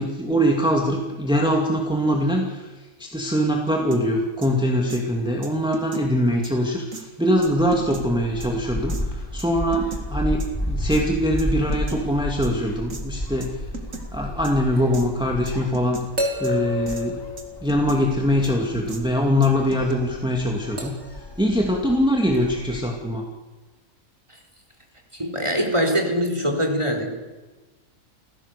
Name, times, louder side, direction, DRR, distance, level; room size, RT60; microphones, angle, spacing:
voice 1, 0.0-2.7 3.0-13.5 14.1-16.0 16.4-17.2 17.6-20.9 21.4-23.2, equal, 5° right, 0 dB, 2.5 m, -22 dB
sound 1, 3.9-4.0 4.4-4.5 4.9-5.0 5.4-6.1 6.4-6.5 6.9-7.0 7.4-8.0 8.4-8.5 8.9-9.0 9.4-10.0 10.4-10.5 10.9-11.0 11.4-12.0 12.4-12.5 12.9-13.0 13.4-13.5 13.7-14.1 14.4-14.5 14.9-15.1 15.5-16.1 16.4-16.5 16.9-17.0 17.4-18.0 18.4-18.5 18.9-19.0 19.4-19.9, right 3 dB, 70° right, 2.5 m, -37 dB
Gull seagull, 7.4-22.8, left 1 dB, 15° left, 4.5 m, -33 dB
sound 2, 14.8-14.9 16.2-18.2 20.8-21.2 22.3-22.4, left 2 dB, 55° right, 4.3 m, -29 dB
voice 2, 25.1-27.1, equal, 20° right, 3 dB, 3.8 m, -23 dB
29.0 x 16.5 x 6.8 m, 1.2 s
omnidirectional pair, 1.4 m